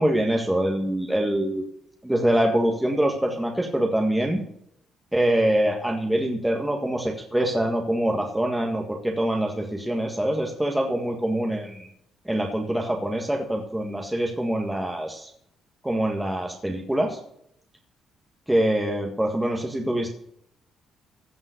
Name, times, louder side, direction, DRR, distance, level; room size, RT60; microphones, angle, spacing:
voice 1, 0.0-1.6 2.0-4.4 5.1-11.9 12.2-15.3 15.8-17.2 18.5-20.1, right 1 dB, 5° right, 1 dB, 1.7 m, -24 dB
15.5 x 5.4 x 8.1 m, 0.72 s
cardioid pair, 90°, 0 cm